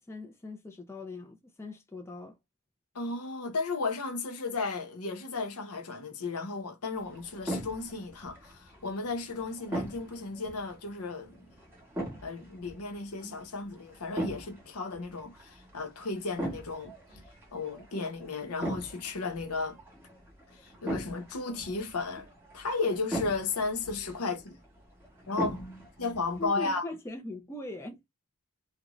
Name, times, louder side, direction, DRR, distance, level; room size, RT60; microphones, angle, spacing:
voice 1, 0.0-2.4 26.4-28.0, left 2 dB, 10° left, 0.4 m, -40 dB
voice 2, 2.9-11.5 12.2-16.9 17.5-19.8 20.6-22.3 22.5-24.5 25.3-26.9, left 3 dB, 75° left, 0.8 m, -34 dB
sound 1, 6.9-26.5, equal, 10° right, 1.0 m, -41 dB
2.5 x 2.2 x 3.0 m
head